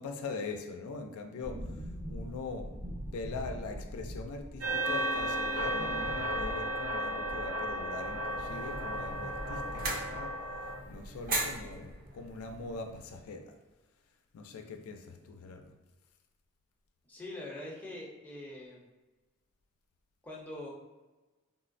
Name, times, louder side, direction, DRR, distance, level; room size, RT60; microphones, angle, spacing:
voice 1, 0.0-10.3 10.9-13.6 14.3-15.7, left 3 dB, 80° left, 4 dB, 0.4 m, -42 dB
sound 1, 1.4-10.3 10.5-10.6 10.9-11.9 12.2-12.3, equal, 65° right, 1.2 m, -44 dB
sound 2, 4.6-10.8, right 1 dB, 90° right, 0.6 m, -34 dB
sound 3, 7.9-13.3, right 2 dB, 45° right, 0.5 m, -39 dB
voice 2, 17.1-18.8 20.2-20.7, left 1 dB, 5° left, -4 dB, 0.5 m, -43 dB
3.6 x 2.0 x 2.5 m, 1.2 s
head